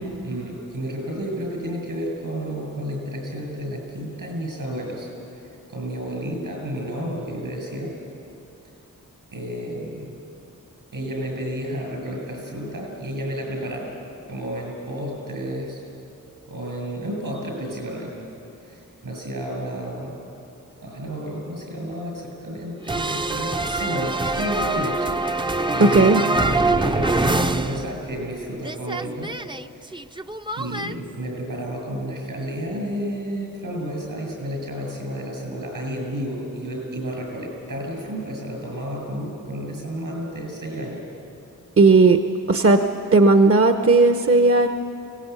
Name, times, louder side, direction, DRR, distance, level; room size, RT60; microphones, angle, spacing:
voice 1, 0.2-5.1 5.4-7.9 9.3-10.1 10.9-14.0 14.3-15.8 16.5-18.1 18.6-20.2 20.8-26.1 26.4-29.3 29.7-30.0 30.6-41.0, equal, 75° right, 0 dB, 7.3 m, -31 dB
sound 1, 22.9-28.3 28.6-30.9, right 2 dB, 15° right, 0.6 m, -24 dB
voice 2, 25.8-26.2 41.8-42.2 42.5-42.8 43.1-44.7, right 3 dB, 40° right, 7 dB, 0.9 m, -15 dB
24.0 x 18.5 x 8.3 m, 2.8 s
wide cardioid pair, 70°, 33 cm